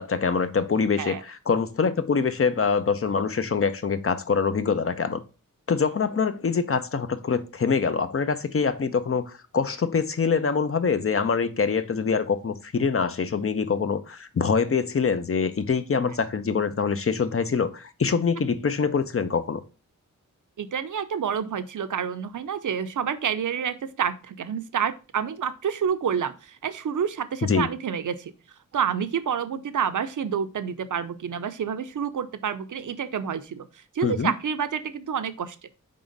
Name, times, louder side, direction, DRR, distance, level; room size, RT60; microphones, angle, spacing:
voice 1, 0.0-5.2 5.7-19.6 27.4-27.7 34.0-34.3, left 5 dB, 45° left, 0.7 m, -24 dB
voice 2, 20.6-28.3 28.7-33.7 33.9-35.6, right 7 dB, 70° right, 0.7 m, -28 dB
4.8 x 3.8 x 5.2 m
cardioid pair, 60°, 32 cm